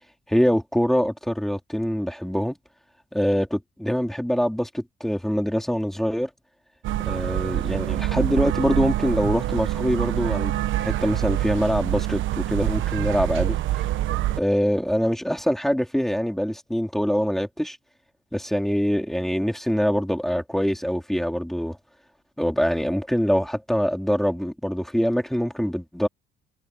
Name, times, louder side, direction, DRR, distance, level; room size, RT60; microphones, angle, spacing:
voice 1, 0.3-2.6 3.1-6.3 7.0-10.5 10.8-13.6 14.4-17.8 18.3-21.8 22.4-26.1, equal, ahead, 4.3 m, -24 dB
sound 1, 6.8-14.4, right 14 dB, 70° right, 1.1 m, -25 dB
cardioid pair, 135°, 21 cm